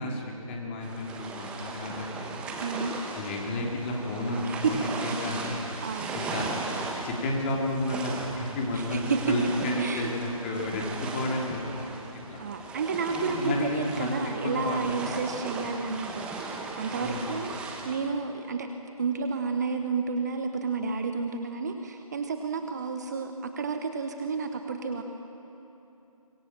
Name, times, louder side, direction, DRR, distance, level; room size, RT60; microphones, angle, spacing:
voice 1, 0.0-2.4 3.1-5.6 6.1-6.5 7.0-12.4 13.1-14.2 14.4-15.2 17.0-17.2, left 1 dB, 20° left, -1 dB, 3.2 m, -31 dB
sound 1, 0.8-17.9, right 3 dB, 5° right, 1.1 m, -37 dB
voice 2, 2.6-2.9 4.4-4.7 5.0-5.3 5.8-6.2 8.7-9.2 9.6-10.1 12.4-18.7 19.0-25.0, right 5 dB, 30° right, 6 dB, 1.1 m, -31 dB
25.0 x 21.0 x 7.5 m, 3.0 s
figure-of-eight pair, 155°, 18 cm